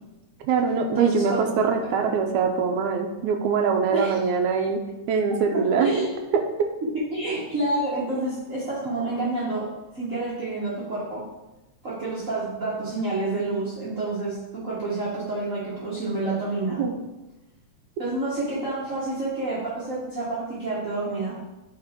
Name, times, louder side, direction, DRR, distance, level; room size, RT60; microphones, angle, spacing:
voice 1, 0.4-4.8 5.1-5.9 6.3-6.7 16.8-17.0, right 5 dB, 75° right, 4 dB, 1.8 m, -23 dB
voice 2, 0.9-1.5 1.8-2.0 3.9-4.3 5.5-6.1 7.1-9.7 9.9-11.2 11.8-16.8 18.0-21.3, right 2 dB, 60° right, -9 dB, 0.8 m, -29 dB
7.8 x 4.1 x 3.7 m, 1.0 s
omnidirectional pair, 3.7 m